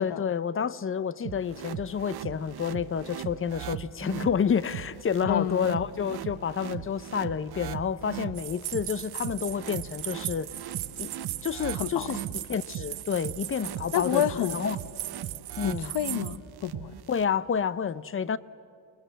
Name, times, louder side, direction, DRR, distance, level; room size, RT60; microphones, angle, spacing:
voice 1, 0.0-10.5 11.0-11.1 11.4-14.8 15.6-15.9 17.1-18.4, left 7 dB, 25° left, 0.5 m, -29 dB
sound 1, 1.2-17.2, right 10 dB, 50° right, 1.0 m, -39 dB
voice 2, 5.3-5.8 11.7-12.1 13.9-14.6 15.6-16.9, left 10 dB, 55° left, 0.9 m, -29 dB
sound 2, 8.3-16.4, right 15 dB, 75° right, 0.9 m, -38 dB
29.5 x 20.5 x 7.9 m
cardioid pair, 130°, 49 cm